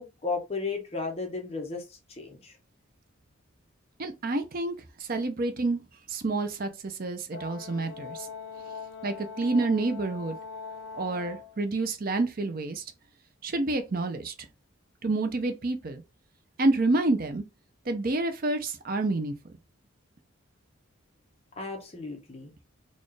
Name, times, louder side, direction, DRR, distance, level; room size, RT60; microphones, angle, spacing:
voice 1, 0.0-2.6 21.6-22.5, left 4 dB, 30° left, 0.9 m, -34 dB
voice 2, 4.0-5.8 6.1-8.3 9.0-10.4 10.9-12.8 13.4-14.3 15.0-16.0 16.6-17.4 17.9-19.3, right 2 dB, 45° right, 0.5 m, -28 dB
Brass instrument, 7.3-11.5, left 5 dB, 70° left, 0.8 m, -41 dB
4.2 x 2.4 x 3.1 m
head